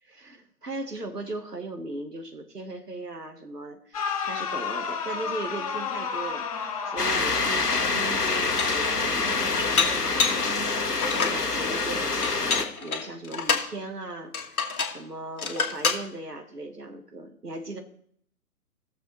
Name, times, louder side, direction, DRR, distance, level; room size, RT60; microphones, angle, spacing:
voice 1, 0.1-17.8, right 2 dB, 85° right, 5 dB, 1.6 m, -38 dB
sound 1, 3.9-9.1 9.9-10.5, left 6 dB, 25° left, 0.8 m, -33 dB
sound 2, 7.0-12.6, left 4 dB, 85° left, 1.4 m, -26 dB
Dishes pots and pans, 7.7-7.8 8.3-8.9 9.8-10.5 10.9-11.4 12.2-13.7 14.3-15.0 15.4-16.0, left 5 dB, 65° left, 1.5 m, -27 dB
16.5 x 6.8 x 3.2 m, 0.63 s
figure-of-eight pair, 130°, 46 cm